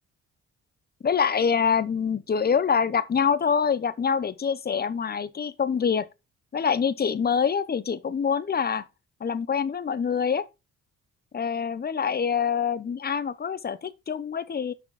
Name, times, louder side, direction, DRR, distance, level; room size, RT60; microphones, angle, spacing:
voice 1, 1.0-6.1 6.5-8.8 9.2-10.5 11.3-14.7, left 6 dB, 30° left, 0.8 m, -25 dB
6.4 x 5.9 x 4.9 m
cardioid pair, 90°, 30 cm